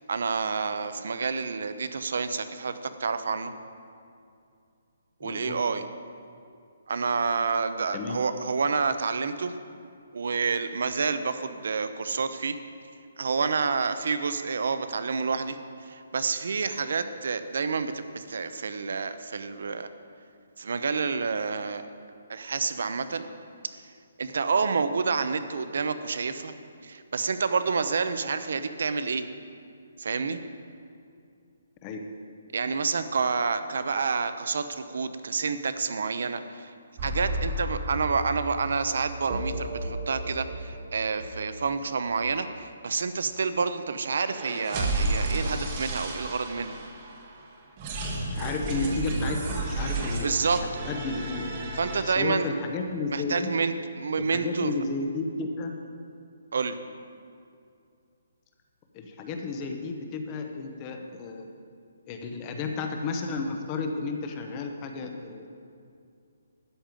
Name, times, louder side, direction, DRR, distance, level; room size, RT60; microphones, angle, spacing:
voice 1, 0.1-3.5 5.2-5.8 6.9-9.5 10.1-12.6 13.2-15.6 15.8-19.9 20.6-21.8 22.3-23.2 24.2-26.5 26.8-29.3 30.0-30.4 32.5-36.7 37.0-46.7 50.2-50.6 51.8-52.5 53.1-54.7 56.5-56.8, right 5 dB, 55° right, 11 dB, 0.7 m, -28 dB
voice 2, 5.2-5.6 7.9-8.2 31.8-32.1 48.3-51.5 52.0-53.6 54.2-55.7 58.9-61.5 62.1-65.5, left 3 dB, 15° left, 4 dB, 0.7 m, -32 dB
sound 1, 37.0-41.8 42.2-42.3 42.6-42.7 43.1-43.2 44.1-47.3 47.8-52.0, right 2 dB, 20° right, 1.1 m, -32 dB
12.5 x 5.4 x 9.0 m, 2.4 s
hypercardioid pair, 180°, 0 cm